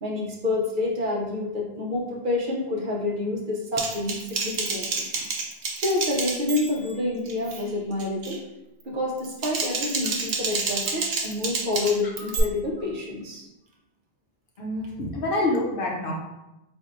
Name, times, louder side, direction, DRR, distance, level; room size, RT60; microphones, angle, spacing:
voice 1, 0.0-5.1 5.8-8.4 8.8-13.5, left 2 dB, 55° right, -2 dB, 0.8 m, -28 dB
Typing, 3.8-6.9 7.3-7.6 8.0-8.4 9.2-12.4, right 4 dB, 85° right, 0.9 m, -29 dB
voice 2, 14.6-16.1, left 2 dB, 65° left, -1 dB, 0.8 m, -27 dB
4.3 x 2.6 x 2.5 m, 0.94 s
omnidirectional pair, 1.1 m